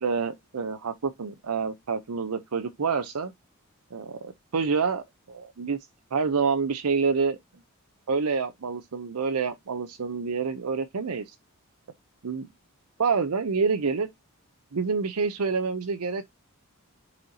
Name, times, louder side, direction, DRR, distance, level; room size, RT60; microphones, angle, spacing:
voice 1, 0.0-3.3 3.9-5.8 6.1-7.4 8.1-11.2 12.2-12.5 13.0-14.1 14.7-16.3, right 5 dB, 85° right, 0.7 m, -27 dB
10.5 x 4.2 x 2.7 m
head